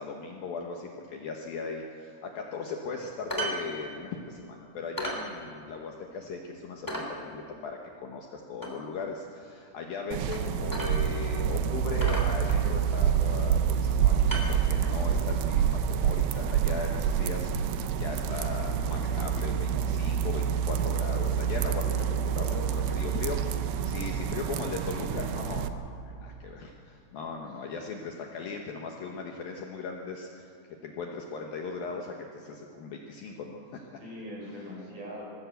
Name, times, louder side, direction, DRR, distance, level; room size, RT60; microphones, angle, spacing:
voice 1, 0.0-30.5 30.8-34.0 34.4-34.7, left 4 dB, 65° left, 1 dB, 2.5 m, -38 dB
sound 1, 3.3-3.6 3.9-4.0 4.4-4.5 5.0-5.2 5.7-5.8 6.2-6.3 6.9-7.1 8.6-8.8 10.3-10.4 10.7-11.3 11.5-11.6 12.0-12.9 13.7-13.9 14.2-15.0 16.0-16.1, right 1 dB, 5° left, 2.3 m, -35 dB
sound 2, 10.1-25.7, right 8 dB, 80° right, 2.3 m, -27 dB
voice 2, 34.0-35.2, equal, 45° right, -3 dB, 6.9 m, -41 dB
21.5 x 15.5 x 8.0 m, 2.5 s
omnidirectional pair, 5.3 m